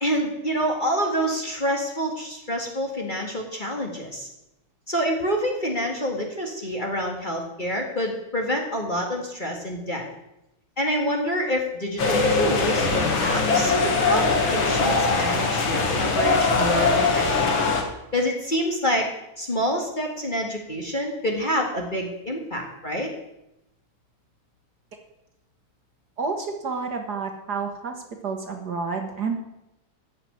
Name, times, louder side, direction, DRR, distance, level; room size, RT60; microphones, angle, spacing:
voice 1, 0.0-4.3 4.9-10.1 10.8-17.7 18.1-19.1 19.4-23.1, equal, 25° left, 1 dB, 1.9 m, -27 dB
sound 1, 12.0-17.8, left 3 dB, 65° left, 2.6 m, -21 dB
voice 2, 26.2-27.9 28.2-29.4, right 4 dB, 50° right, 4 dB, 1.9 m, -29 dB
14.5 x 6.0 x 9.3 m, 0.88 s
omnidirectional pair, 2.3 m